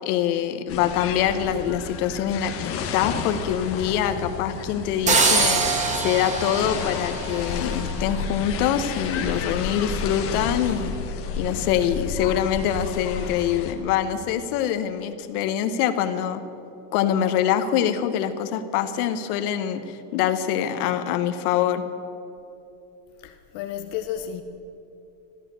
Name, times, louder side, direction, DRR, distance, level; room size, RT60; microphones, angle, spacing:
voice 1, 0.0-11.0 11.4-16.4 16.9-21.8, left 9 dB, 65° left, 1.2 m, -24 dB
sound 1, 0.7-13.7, left 5 dB, 30° left, 1.2 m, -32 dB
sound 2, 5.1-7.9, right 3 dB, 15° right, 0.9 m, -23 dB
voice 2, 23.2-24.4, left 10 dB, 45° left, 0.7 m, -33 dB
14.0 x 12.5 x 6.9 m
cardioid pair, 170°, 47 cm